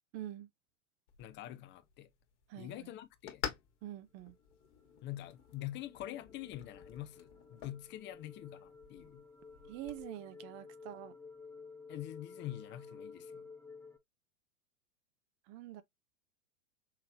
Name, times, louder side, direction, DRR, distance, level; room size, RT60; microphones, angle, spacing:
voice 1, 0.1-0.5 2.5-2.9 3.8-4.3 9.7-11.1 15.5-15.8, right 13 dB, 35° right, 0.6 m, -45 dB
sound 1, 1.1-10.0, left 9 dB, 60° left, 1.5 m, -49 dB
voice 2, 1.2-2.1 2.5-3.4 5.0-9.2 11.9-13.5, left 14 dB, 30° left, 0.6 m, -45 dB
sound 2, 4.3-14.0, left 4 dB, 5° left, 1.0 m, -53 dB
5.8 x 3.3 x 2.6 m
figure-of-eight pair, 95°, 38 cm